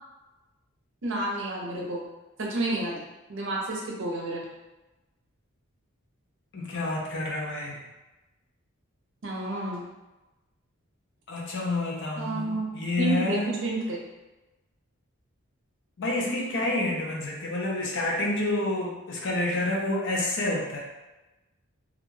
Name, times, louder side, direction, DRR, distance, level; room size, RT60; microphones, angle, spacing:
voice 1, 1.0-2.0 2.4-3.0 3.3-4.5 9.2-9.9 12.2-14.0, right 2 dB, 55° right, -3 dB, 0.6 m, -30 dB
voice 2, 6.5-7.8 11.3-13.6 16.0-20.8, left 2 dB, 55° left, -2 dB, 0.5 m, -28 dB
2.4 x 2.2 x 3.1 m, 1.1 s
head